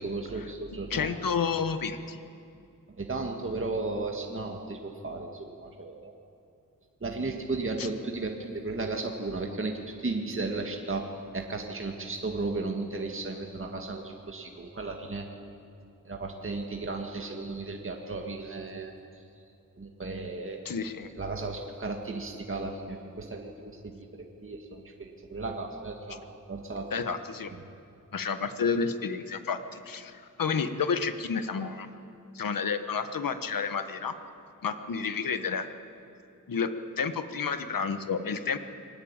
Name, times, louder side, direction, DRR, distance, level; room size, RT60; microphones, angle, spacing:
voice 1, 0.0-1.1 2.9-6.1 7.0-15.3 16.0-19.2 19.8-20.6 21.2-26.9 27.5-27.6, right 3 dB, 40° right, 2 dB, 2.0 m, -35 dB
voice 2, 0.9-2.2 7.8-7.9 20.6-21.1 26.9-27.5 28.1-31.9 32.3-34.1 34.6-35.7 36.5-38.6, left 5 dB, 75° left, 9 dB, 1.3 m, -30 dB
23.0 x 19.0 x 8.9 m, 2.6 s
wide cardioid pair, 95°, 34 cm